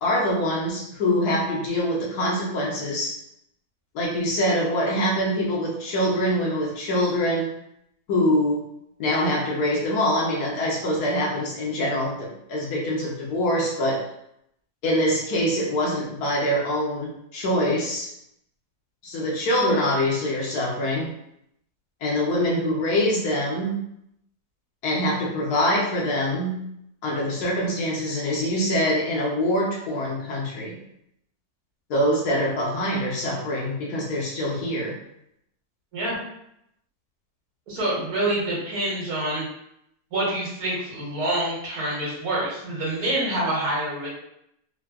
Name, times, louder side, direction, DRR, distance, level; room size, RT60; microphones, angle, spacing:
voice 1, 0.0-3.1 3.9-7.5 8.1-8.6 9.0-14.0 14.8-18.1 19.0-21.1 22.0-23.7 24.8-26.6 27.0-30.8 31.9-35.0, equal, 70° left, -3 dB, 1.1 m, -24 dB
voice 2, 37.7-39.4 40.1-44.1, right 1 dB, 60° right, -6 dB, 1.4 m, -26 dB
3.3 x 2.0 x 2.2 m, 0.77 s
omnidirectional pair, 1.9 m